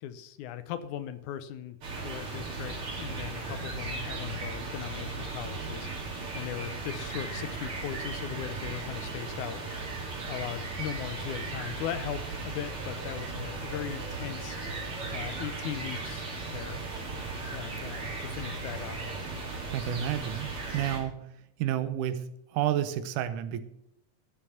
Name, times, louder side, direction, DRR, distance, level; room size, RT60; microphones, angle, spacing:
voice 1, 0.0-1.8 2.0-5.9 6.3-9.6 10.3-14.6 15.1-16.3 16.5-16.8 17.5-19.0, left 10 dB, 75° left, 12 dB, 2.1 m, -38 dB
sound 1, 1.8-21.0, right 3 dB, 45° right, 3.4 m, -37 dB
voice 2, 19.7-21.2 21.6-22.2 22.5-23.6, right 11 dB, 80° right, 12 dB, 2.2 m, -30 dB
13.0 x 6.8 x 5.6 m, 0.80 s
omnidirectional pair, 3.6 m